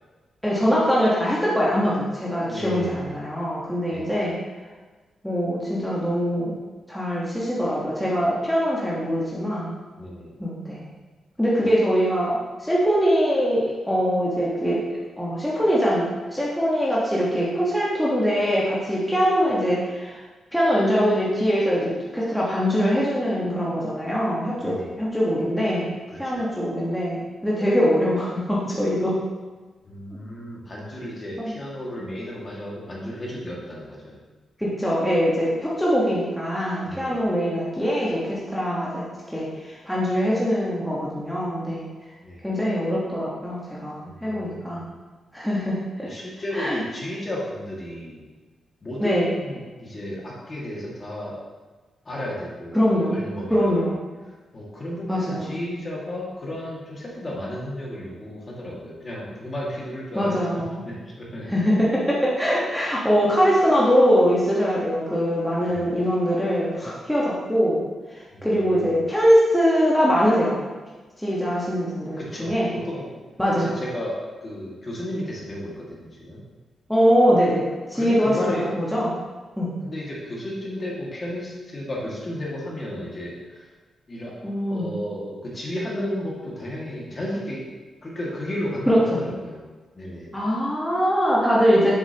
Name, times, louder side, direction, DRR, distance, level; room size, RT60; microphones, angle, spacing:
voice 1, 0.4-4.4 5.2-6.6 6.9-9.7 10.4-10.8 11.4-14.8 15.2-20.2 20.5-25.9 26.2-29.2 30.1-30.2 31.4-31.5 34.6-41.9 42.4-44.8 45.3-46.1 46.5-46.8 49.0-49.3 52.7-53.1 53.5-54.0 55.1-55.6 60.1-60.8 61.5-67.8 68.1-70.6 71.2-72.7 73.4-73.7 76.9-79.1 79.6-79.7 84.4-84.9 88.9-89.2 90.3-91.9, equal, ahead, -7 dB, 1.4 m, -22 dB
voice 2, 2.5-3.1 3.9-4.2 10.0-10.4 11.6-11.7 24.6-24.9 26.1-26.5 29.8-34.2 36.9-37.2 42.2-42.4 44.0-44.6 46.0-48.3 48.8-51.4 52.1-52.8 53.1-53.8 54.5-60.3 60.8-61.6 65.7-65.9 68.3-68.4 72.2-72.5 72.8-73.1 73.5-74.1 74.4-76.4 77.9-78.7 79.8-83.6 84.1-84.3 84.7-87.6 88.0-89.6 90.0-90.3, left 1 dB, 35° left, -4 dB, 2.0 m, -33 dB
7.0 x 6.9 x 3.0 m, 1.3 s
cardioid pair, 100°, 0 cm